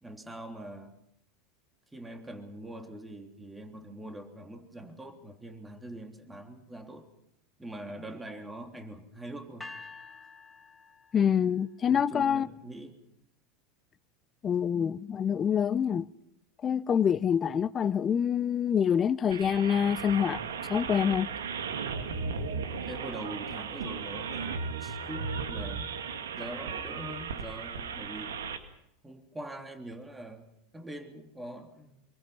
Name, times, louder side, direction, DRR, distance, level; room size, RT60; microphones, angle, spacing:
voice 1, 0.0-0.9 1.9-7.1 7.6-9.7 11.9-13.0 22.1-25.9 26.4-28.4 29.0-32.0, right 1 dB, 10° right, 3.3 m, -43 dB
sound 1, 9.6-11.7, left 3 dB, 5° left, 2.3 m, -48 dB
voice 2, 11.1-12.5 14.4-16.0 16.6-20.4 20.7-21.3, left 8 dB, 30° left, 0.8 m, -26 dB
sound 2, 19.3-28.6, right 5 dB, 80° right, 2.1 m, -36 dB
25.5 x 23.5 x 5.8 m
hypercardioid pair, 85°, 0 cm